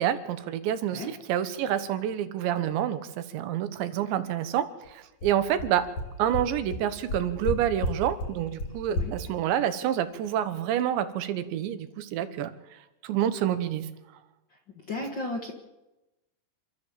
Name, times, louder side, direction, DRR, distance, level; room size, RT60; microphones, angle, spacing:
voice 1, 0.0-5.9 6.2-12.5 13.0-13.9, right 10 dB, 75° right, 11 dB, 3.4 m, -28 dB
sound 1, 4.8-4.9 5.2-5.3 5.6-5.7 6.0-6.1 6.3-6.4 6.7-6.8 7.1-7.5 7.8-7.9 8.2-8.3 8.6-8.7 8.9-9.0, left 1 dB, 35° left, 3.0 m, -29 dB
voice 2, 14.9-15.5, left 2 dB, 70° left, 2 dB, 1.0 m, -33 dB
27.5 x 13.5 x 7.5 m, 0.98 s
omnidirectional pair, 5.4 m